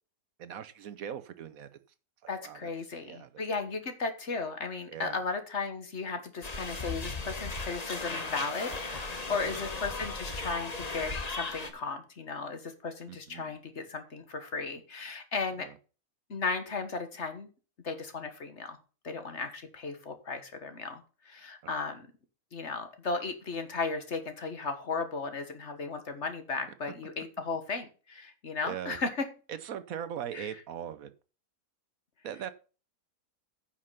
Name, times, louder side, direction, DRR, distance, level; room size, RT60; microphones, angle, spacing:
voice 1, 0.4-1.7 2.4-2.7 3.0-3.3 4.9-5.2 9.3-9.6 13.3-13.6 15.6-15.8 28.6-29.0 29.5-31.1 32.2-32.5, right 9 dB, 70° right, 13 dB, 1.2 m, -40 dB
voice 2, 2.3-15.7 16.3-17.5 17.8-18.8 19.0-22.1 22.5-29.3 30.3-30.5, left 4 dB, 50° left, 8 dB, 1.6 m, -35 dB
sound 1, 6.4-11.7, left 3 dB, 30° left, 1.2 m, -36 dB
9.9 x 5.8 x 5.7 m, 0.35 s
omnidirectional pair, 1.6 m